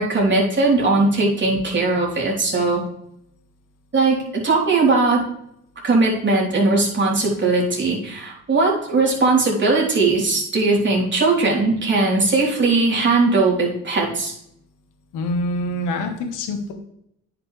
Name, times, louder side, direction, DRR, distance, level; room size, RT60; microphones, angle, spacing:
voice 1, 0.0-2.8 3.9-5.2 5.8-14.3, right 3 dB, 40° right, -3 dB, 3.5 m, -19 dB
voice 2, 15.1-16.7, left 1 dB, 90° left, 5 dB, 1.4 m, -25 dB
9.9 x 6.0 x 3.3 m, 0.76 s
cardioid pair, 90°, 30 cm